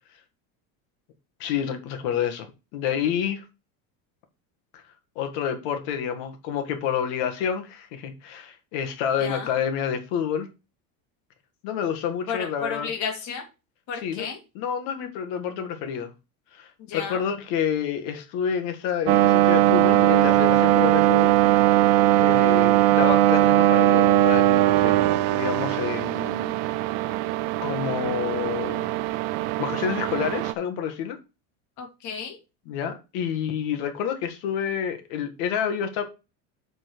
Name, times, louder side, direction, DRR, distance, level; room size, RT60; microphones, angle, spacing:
voice 1, 1.4-2.5 2.7-3.4 4.7-4.8 5.2-10.5 11.6-12.9 13.9-14.3 14.5-16.1 16.5-21.3 22.2-26.8 27.6-29.0 29.6-31.2 32.7-36.0, left 8 dB, 65° left, 1.9 m, -29 dB
voice 2, 9.2-9.5 12.3-13.4 13.9-14.4 16.8-17.2 31.8-32.4, left 6 dB, 45° left, 2.2 m, -32 dB
sound 1, 19.1-30.5, right 15 dB, 50° right, 0.6 m, -20 dB
8.2 x 4.4 x 4.6 m
cardioid pair, 170°, 41 cm